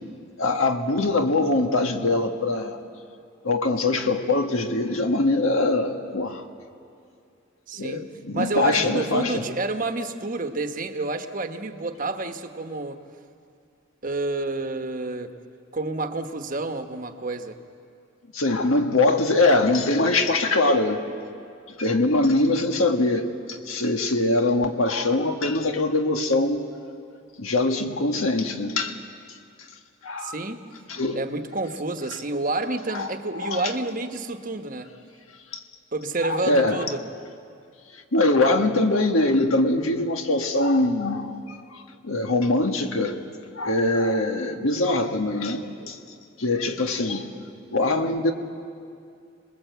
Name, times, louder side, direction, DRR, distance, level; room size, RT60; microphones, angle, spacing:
voice 1, 0.4-2.8 3.4-6.4 7.8-9.4 18.3-21.0 21.8-26.6 27.4-29.0 30.0-30.4 30.9-31.2 32.9-33.7 35.5-35.6 36.2-36.9 37.9-43.2 43.5-46.0 46.4-47.3 47.7-48.3, left 2 dB, 85° left, 5 dB, 1.6 m, -23 dB
voice 2, 7.7-8.0 8.3-13.0 14.0-15.3 15.7-17.6 30.2-30.6 31.1-34.9 35.9-37.0, right 2 dB, 40° right, 7 dB, 1.1 m, -29 dB
27.0 x 20.5 x 8.1 m, 2.4 s
head